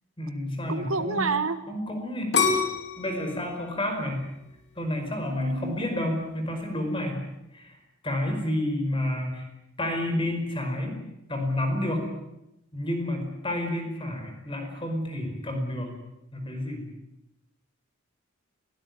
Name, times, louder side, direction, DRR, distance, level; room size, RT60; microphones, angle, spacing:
voice 1, 0.2-1.2 1.7-2.4 3.0-4.3 4.7-7.3 7.5-7.8 8.0-9.5 9.8-11.0 11.3-12.1 12.7-15.9 16.3-16.8, left 1 dB, 25° left, 5 dB, 5.1 m, -30 dB
voice 2, 0.7-1.6 5.3-5.7, right 4 dB, 75° right, 11 dB, 1.6 m, -28 dB
sound 1, 2.3-5.2 5.8-6.2, left 5 dB, 50° left, 4.0 m, -28 dB
22.5 x 17.5 x 9.5 m, 0.89 s
head